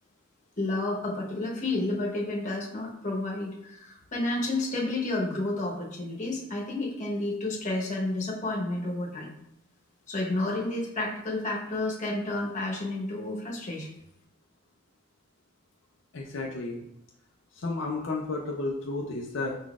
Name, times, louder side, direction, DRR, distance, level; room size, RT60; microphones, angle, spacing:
voice 1, 0.6-9.3 10.1-13.9, left 2 dB, 40° left, -3 dB, 1.1 m, -31 dB
voice 2, 16.1-16.8 17.5-19.6, left 3 dB, 70° left, -1 dB, 0.5 m, -32 dB
5.0 x 3.9 x 2.4 m, 0.78 s
head